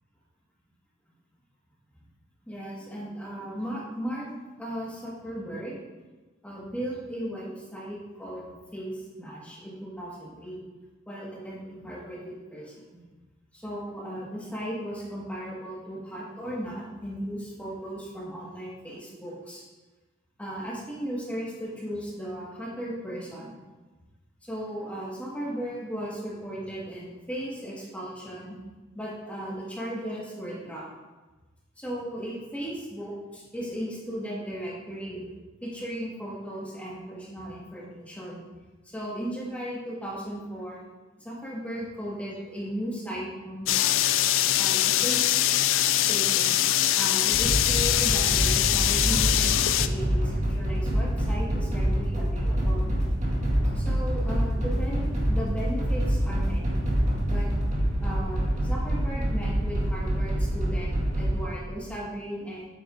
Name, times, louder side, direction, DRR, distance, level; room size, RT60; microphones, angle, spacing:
voice 1, 2.5-4.3 4.6-5.8 6.4-10.6 11.1-13.0 13.5-19.6 20.4-23.6 24.4-28.6 28.9-30.9 31.8-35.2 35.6-38.4 38.8-40.8 41.2-44.1 44.6-45.5 45.9-46.6 47.0-52.9 53.7-56.8 57.2-57.5 58.0-60.9 61.2-62.7, equal, 5° left, -5 dB, 1.6 m, -36 dB
sound 1, 43.7-49.9, left 13 dB, 65° left, 0.4 m, -23 dB
sound 2, 47.3-61.5, equal, 35° right, 1.8 m, -26 dB
8.7 x 8.5 x 2.6 m, 1.2 s
head